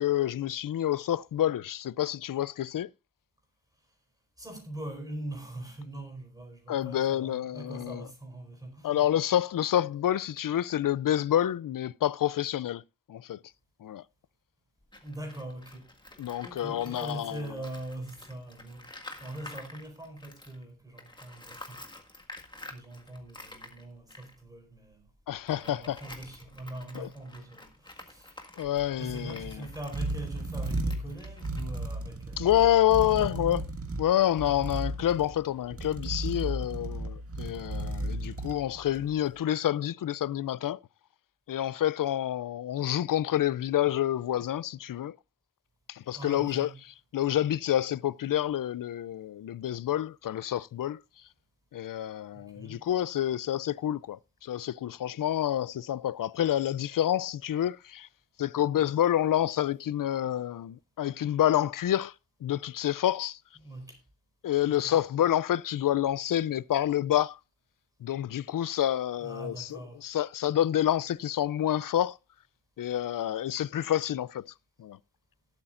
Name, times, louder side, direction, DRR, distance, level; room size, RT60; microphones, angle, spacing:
voice 1, 0.0-2.9 6.7-8.0 8.8-12.8 13.1-13.4 13.8-14.0 16.2-17.4 25.3-26.0 27.0-27.1 28.6-29.5 32.4-33.6 34.0-40.8 41.5-45.1 45.9-46.7 47.1-51.0 51.7-58.1 58.4-62.1 62.4-63.4 64.4-67.4 68.0-72.2 72.8-74.5 74.8-75.0, left 11 dB, 75° left, 0.5 m, -28 dB
voice 2, 4.4-9.0 15.0-15.9 16.4-21.8 22.7-25.1 25.5-28.4 29.0-33.7 46.1-46.9 52.3-52.8 63.6-64.0 64.6-65.0 69.2-70.0, right 1 dB, 10° right, 4.4 m, -42 dB
Tools, 14.8-20.6 20.9-32.4, left 2 dB, 15° left, 1.7 m, -50 dB
sound 1, 28.6-39.2, right 1 dB, 45° right, 1.8 m, -35 dB
18.5 x 8.4 x 2.5 m
wide cardioid pair, 130°, 33 cm